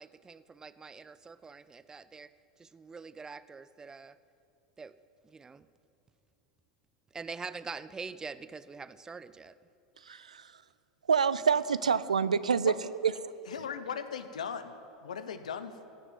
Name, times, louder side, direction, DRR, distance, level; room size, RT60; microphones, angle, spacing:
voice 1, 0.0-2.3 2.6-4.2 4.8-5.0 5.2-5.7 7.1-9.6, right 4 dB, 15° right, 16 dB, 0.5 m, -44 dB
voice 2, 10.0-10.6 11.1-12.7 13.0-13.1, right 6 dB, 90° right, 16 dB, 0.4 m, -27 dB
voice 3, 13.5-14.7 15.0-15.7, left 7 dB, 80° left, 11 dB, 0.9 m, -38 dB
15.5 x 6.0 x 9.3 m, 2.8 s
hypercardioid pair, 95°, 4 cm